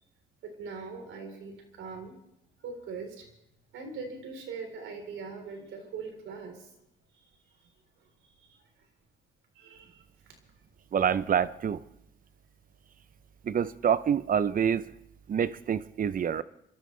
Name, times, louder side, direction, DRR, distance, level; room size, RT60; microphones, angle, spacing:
voice 1, 0.4-2.2 2.6-3.3 3.7-6.8 7.6-7.7 8.0-8.7 9.5-10.3, right 4 dB, 80° right, 4.0 m, -42 dB
voice 2, 10.9-11.8 13.4-14.8 15.3-16.4, right 8 dB, 45° right, 0.7 m, -26 dB
27.5 x 13.5 x 3.3 m
cardioid pair, 90°, 20 cm